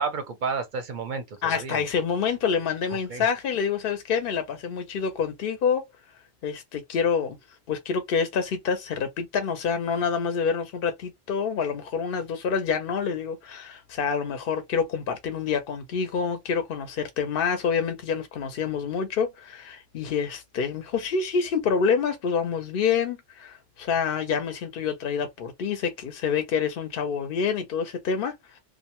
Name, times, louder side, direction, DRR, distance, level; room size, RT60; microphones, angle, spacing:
voice 1, 0.0-1.8 2.9-3.2, right 5 dB, 55° right, 0.6 m, -31 dB
voice 2, 1.4-5.9 6.4-7.4 7.7-28.6, left 6 dB, 65° left, 0.7 m, -27 dB
2.4 x 2.1 x 2.9 m
omnidirectional pair, 1.1 m